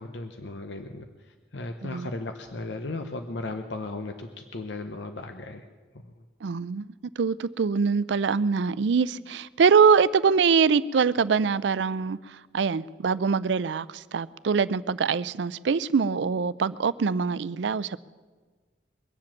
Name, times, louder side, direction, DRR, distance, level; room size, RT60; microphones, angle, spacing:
voice 1, 0.0-5.7 6.0-6.1, left 2 dB, 75° left, 0.8 m, -36 dB
voice 2, 6.4-6.9 7.2-12.2 12.5-18.0, right 5 dB, 75° right, 0.4 m, -23 dB
22.5 x 7.6 x 7.4 m
head